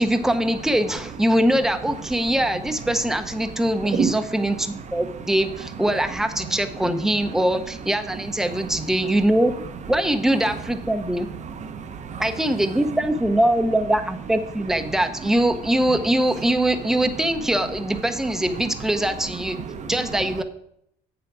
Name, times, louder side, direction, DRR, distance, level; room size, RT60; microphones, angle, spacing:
voice 1, 0.0-9.5 9.9-11.3 12.2-19.6 19.9-20.4, right 1 dB, 5° right, 8 dB, 0.7 m, -22 dB
voice 2, 3.8-4.1 4.9-5.0 6.4-6.5 8.5-8.7 11.3-12.4 18.7-18.8 19.5-20.4, right 6 dB, 45° right, 10 dB, 0.9 m, -30 dB
7.6 x 6.0 x 6.0 m, 0.72 s
cardioid pair, 110°, 17 cm